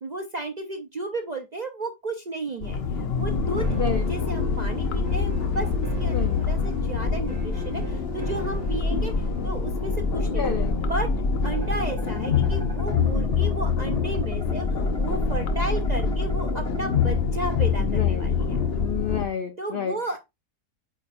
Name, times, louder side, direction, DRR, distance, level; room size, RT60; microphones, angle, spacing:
voice 1, 0.0-3.7 4.1-9.1 9.4-10.4 10.8-11.1 11.4-18.6 19.6-20.2, right 2 dB, 65° right, 0.4 m, -33 dB
sound 1, 2.6-19.2, left 5 dB, 50° left, 0.8 m, -25 dB
sound 2, 3.6-12.0, right 6 dB, 40° right, 1.8 m, -42 dB
voice 2, 3.7-4.3 6.1-6.5 10.3-10.7 17.8-18.3 18.8-20.0, left 7 dB, 80° left, 0.5 m, -30 dB
sound 3, 11.4-17.0, equal, 5° left, 0.5 m, -41 dB
8.4 x 5.0 x 2.5 m
omnidirectional pair, 1.7 m